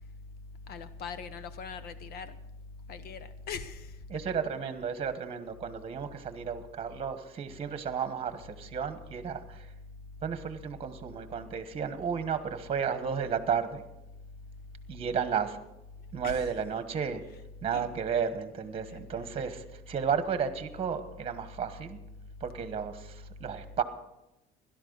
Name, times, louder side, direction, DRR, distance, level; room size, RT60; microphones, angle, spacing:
voice 1, 0.7-2.3 2.9-4.2 16.2-16.4 17.3-17.4 17.7-17.9 18.9-19.2, left 5 dB, 60° left, 13 dB, 1.1 m, -41 dB
voice 2, 4.1-9.7 10.2-13.8 14.9-15.6 16.1-17.2 17.6-22.0 22.4-23.8, right 7 dB, 30° right, 10 dB, 1.3 m, -33 dB
17.0 x 12.0 x 4.0 m, 0.92 s
cardioid pair, 125°, 18 cm